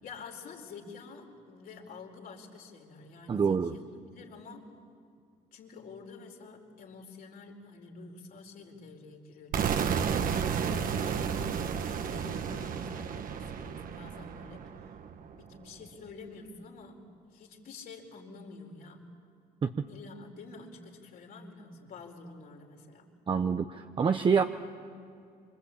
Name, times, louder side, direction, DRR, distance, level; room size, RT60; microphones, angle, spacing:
voice 1, 0.0-4.7 5.5-15.0 15.4-17.0 17.3-19.0 19.9-23.1, left 4 dB, 60° left, 1 dB, 4.6 m, -48 dB
voice 2, 3.3-3.7 19.6-19.9 23.3-24.4, right 6 dB, 30° right, 7 dB, 0.9 m, -26 dB
sound 1, 9.5-15.4, right 7 dB, 55° right, 1.5 m, -32 dB
26.5 x 25.0 x 8.6 m, 2.4 s
cardioid pair, 110°, 17 cm